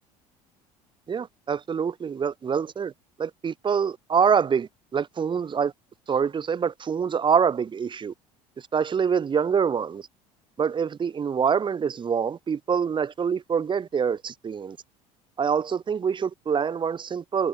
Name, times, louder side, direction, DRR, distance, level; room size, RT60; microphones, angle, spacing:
voice 1, 1.1-2.9 3.2-5.7 6.1-8.1 8.7-10.0 10.6-14.8 15.4-17.5, right 6 dB, 25° right, 0.9 m, -25 dB
figure-of-eight pair, 60°, 20 cm